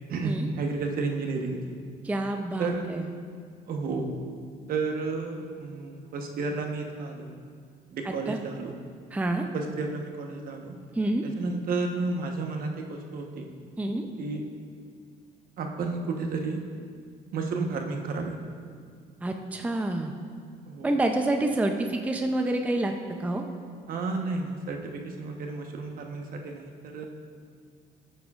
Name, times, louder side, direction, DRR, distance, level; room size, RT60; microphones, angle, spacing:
voice 1, 0.1-1.8 2.6-2.9 3.7-4.1 4.7-7.3 7.9-8.7 9.5-10.8 11.2-13.5 14.2-14.4 15.6-16.6 17.3-18.4 20.7-20.9 23.9-27.0, right 3 dB, 60° right, 3 dB, 1.1 m, -32 dB
voice 2, 2.0-3.1 8.1-8.4 9.1-9.4 11.0-11.2 13.8-14.1 19.2-20.1 20.8-22.9 23.2-23.4, right 1 dB, 10° right, 4 dB, 0.5 m, -27 dB
14.0 x 9.0 x 2.4 m, 2.1 s
cardioid pair, 110°, 17 cm